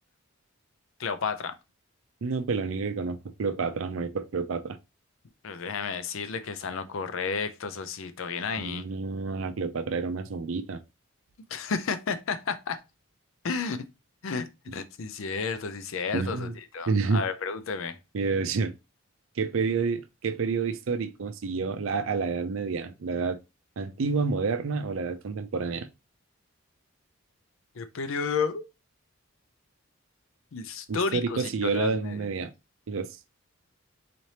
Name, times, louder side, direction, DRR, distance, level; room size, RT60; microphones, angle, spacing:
voice 1, 1.0-1.5 5.4-8.9 11.5-12.8 13.4-13.9 14.2-18.0 27.8-28.7 30.5-32.2, left 5 dB, 70° left, 0.5 m, -32 dB
voice 2, 2.2-4.8 8.6-10.8 16.1-16.6 16.9-17.2 18.1-18.7 19.4-23.4 23.8-25.9 30.9-32.5 32.9-33.2, right 4 dB, 75° right, 0.5 m, -29 dB
4.1 x 3.2 x 2.8 m
head